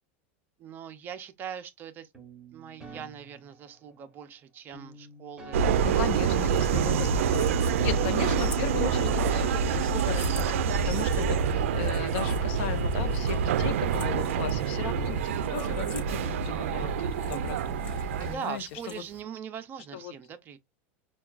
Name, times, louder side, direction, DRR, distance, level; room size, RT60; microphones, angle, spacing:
voice 1, 0.6-2.1 2.5-5.8 6.5-6.6 18.3-20.6, right 8 dB, 30° right, 0.5 m, -41 dB
sound 1, 2.1-4.1 4.7-7.0 7.3-9.6 9.9-11.9, right 1 dB, 10° right, 0.9 m, -50 dB
Subway metro underground, 5.5-18.3, right 6 dB, 90° right, 0.4 m, -26 dB
sound 2, 5.7-19.2, left 3 dB, 25° left, 1.1 m, -50 dB
voice 2, 5.8-19.0 19.9-20.1, left 9 dB, 65° left, 0.7 m, -37 dB
5.6 x 2.3 x 2.3 m
supercardioid pair, 145°, 7 cm